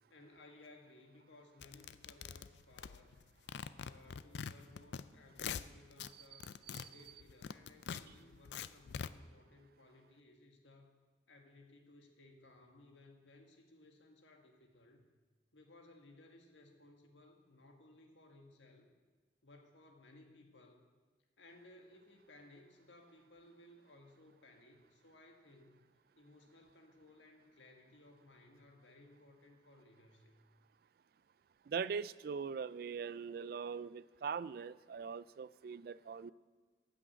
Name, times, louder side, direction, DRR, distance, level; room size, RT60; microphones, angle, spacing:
voice 1, 0.1-3.2 3.7-6.5 6.8-11.0 11.3-15.1 15.5-18.9 19.4-20.8 21.4-25.8 26.2-30.3, left 2 dB, 80° left, 3 dB, 1.7 m, -61 dB
sound 1, 1.6-3.2 3.5-5.0 5.3-6.1 6.4-9.1, left 7 dB, 65° left, 0.4 m, -44 dB
voice 2, 31.7-36.3, right 6 dB, 55° right, 18 dB, 0.3 m, -41 dB
13.5 x 6.2 x 8.8 m, 1.3 s
head